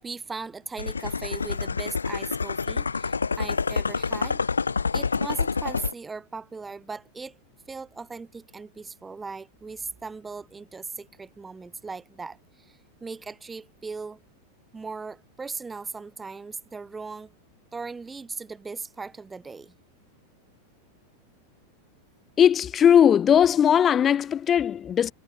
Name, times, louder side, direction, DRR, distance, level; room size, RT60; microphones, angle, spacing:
voice 1, 0.0-4.4 4.9-7.4 7.7-14.2 14.7-17.3 17.7-19.8, right 4 dB, 15° right, 7.3 m, -38 dB
sound 1, 0.8-5.9, left 5 dB, 75° left, 0.9 m, -27 dB
voice 2, 22.4-25.1, left 9 dB, 25° left, 0.7 m, -19 dB
figure-of-eight pair, 90°, 0 cm